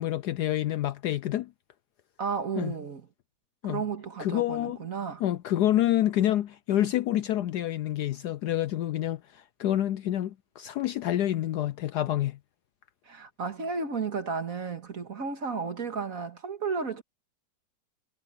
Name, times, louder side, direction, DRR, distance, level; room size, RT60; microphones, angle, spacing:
voice 1, 0.0-1.5 2.6-2.7 3.6-3.8 4.2-4.8 5.2-12.4, left 13 dB, 70° left, 1.0 m, -28 dB
voice 2, 2.2-3.0 3.6-5.2 13.1-17.0, right 5 dB, 45° right, 2.1 m, -33 dB
omnidirectional pair, 2.1 m